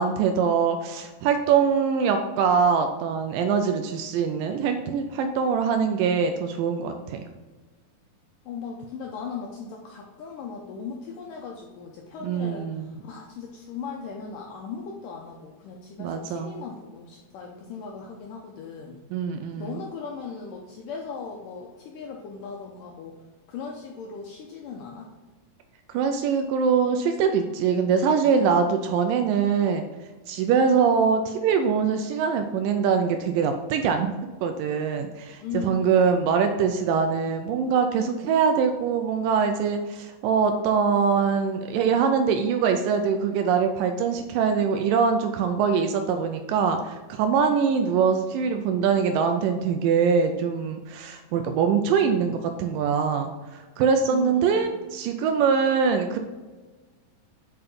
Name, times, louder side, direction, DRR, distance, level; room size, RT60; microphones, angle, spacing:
voice 1, 0.0-7.3 12.2-13.0 16.0-16.6 19.1-19.8 25.9-29.9 30.3-56.2, right 6 dB, 90° right, 6 dB, 1.9 m, -23 dB
voice 2, 8.5-19.0 19.6-23.2 23.5-25.1 35.4-36.2 54.1-54.8, left 5 dB, 80° left, 0 dB, 2.0 m, -38 dB
6.9 x 5.4 x 5.2 m, 1.3 s
omnidirectional pair, 4.5 m